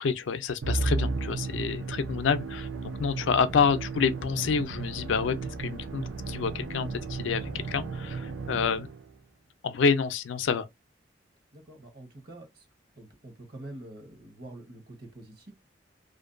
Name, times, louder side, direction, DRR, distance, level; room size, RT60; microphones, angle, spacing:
voice 1, 0.0-2.7 3.0-8.9 9.6-10.7, left 6 dB, 80° left, 0.4 m, -28 dB
Musical instrument, 0.6-9.1, right 3 dB, 85° right, 0.5 m, -34 dB
voice 2, 11.5-12.7 13.0-15.5, right 1 dB, 55° right, 0.9 m, -46 dB
2.5 x 2.2 x 2.5 m
head